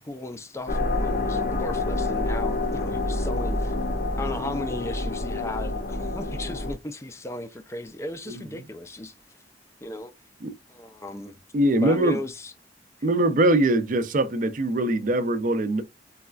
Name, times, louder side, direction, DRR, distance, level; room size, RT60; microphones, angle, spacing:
voice 1, 0.0-3.8 4.2-9.1 9.8-10.1 10.7-11.4 11.8-12.5, left 2 dB, 15° left, 0.4 m, -35 dB
sound 1, 0.7-6.7, left 2 dB, 50° left, 0.6 m, -27 dB
voice 2, 11.5-12.2 13.0-15.8, right 1 dB, 50° right, 0.5 m, -22 dB
4.0 x 2.3 x 2.3 m
head